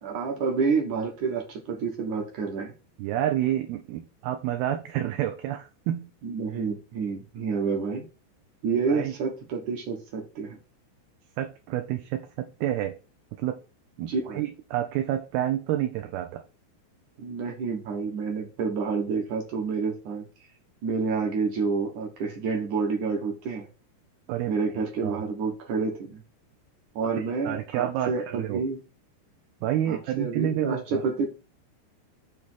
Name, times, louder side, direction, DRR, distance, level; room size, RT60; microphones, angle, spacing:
voice 1, 0.0-2.7 6.2-8.1 8.6-10.6 14.1-14.4 17.2-20.2 20.8-23.7 24.5-26.2 27.0-28.8 29.9-31.3, right 5 dB, 60° right, 1 dB, 2.2 m, -29 dB
voice 2, 3.0-6.1 8.9-9.1 11.4-13.0 13.3-13.6 14.0-16.4 24.3-24.5 25.0-25.2 27.1-28.6 29.6-31.0, right 12 dB, 75° right, 5 dB, 2.4 m, -29 dB
7.6 x 3.5 x 6.2 m, 0.32 s
omnidirectional pair, 4.9 m